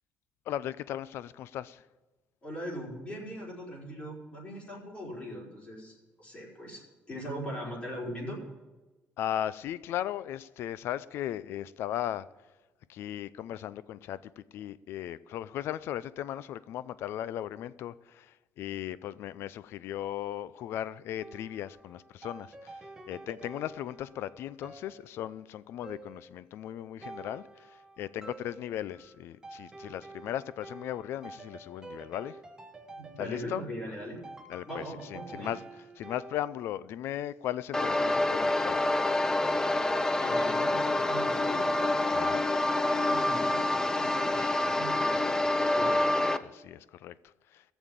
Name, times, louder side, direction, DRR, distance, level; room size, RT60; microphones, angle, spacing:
voice 1, 0.5-1.8 9.2-12.3 12.9-14.2 14.5-18.3 18.6-22.5 23.1-27.4 28.0-32.3 33.2-33.6 34.5-34.8 35.1-35.6 36.0-38.8 42.1-42.4 45.9-46.1 46.5-47.1, left 11 dB, 70° left, 0.4 m, -37 dB
voice 2, 2.4-8.4 32.9-34.2 34.6-35.6 40.2-41.7 42.9-46.4, equal, 30° left, 4.5 m, -40 dB
sound 1, 21.2-36.4, right 2 dB, 15° right, 1.1 m, -49 dB
sound 2, 37.7-46.4, left 2 dB, 15° left, 0.5 m, -27 dB
15.0 x 7.1 x 7.6 m
cardioid pair, 130°, 4 cm